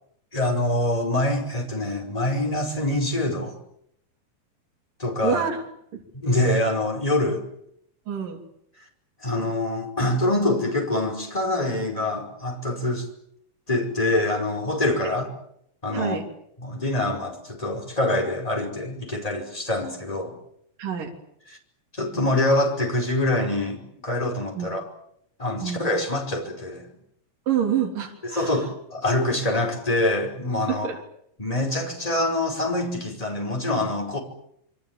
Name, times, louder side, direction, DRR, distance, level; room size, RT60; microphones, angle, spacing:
voice 1, 0.3-3.6 5.0-5.4 6.1-7.4 9.2-13.1 13.7-15.3 15.8-16.2 16.6-20.4 21.9-24.9 25.4-26.9 28.3-30.9 31.4-34.2, left 1 dB, 10° left, 5.3 m, -25 dB
voice 2, 5.2-5.6 5.9-6.0 8.1-8.4 15.0-15.1 15.9-16.2 20.8-21.1 24.6-24.7 25.6-26.0 27.5-28.6 30.7-31.0, right 8 dB, 65° right, 4.9 m, -27 dB
27.5 x 24.5 x 7.6 m
omnidirectional pair, 4.1 m